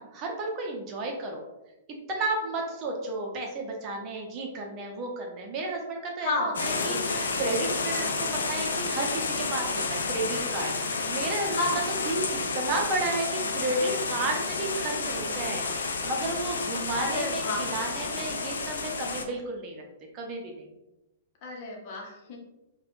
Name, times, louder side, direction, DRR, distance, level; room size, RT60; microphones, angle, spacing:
voice 1, 0.0-1.4 2.1-11.7 12.0-12.2 12.5-19.8 20.1-20.7, right 2 dB, 35° right, 1 dB, 0.7 m, -32 dB
voice 2, 6.2-7.4 7.7-8.3 11.5-11.9 16.9-17.7 21.4-22.4, left 2 dB, 50° left, -1 dB, 0.8 m, -33 dB
sound 1, 6.5-19.2, left 4 dB, 75° left, 0.4 m, -30 dB
3.3 x 2.3 x 2.5 m, 0.98 s
hypercardioid pair, 110°, 0 cm